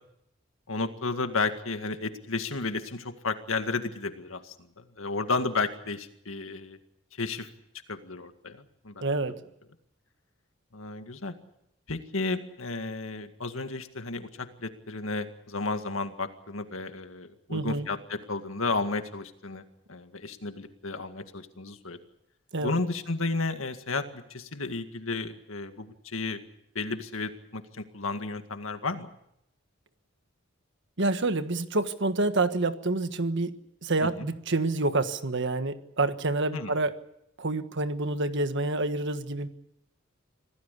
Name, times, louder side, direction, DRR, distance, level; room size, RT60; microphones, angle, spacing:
voice 1, 0.7-6.8 7.2-7.5 7.9-9.1 10.7-11.3 11.9-19.6 19.9-22.0 22.6-26.4 26.8-29.1 34.0-34.3 36.5-36.8, left 3 dB, 80° left, 7 dB, 2.0 m, -33 dB
voice 2, 9.0-9.3 17.5-17.9 22.5-22.7 31.0-33.5 33.8-36.9 37.4-39.5, right 2 dB, 60° right, 10 dB, 1.5 m, -27 dB
26.0 x 17.0 x 8.4 m, 0.78 s
head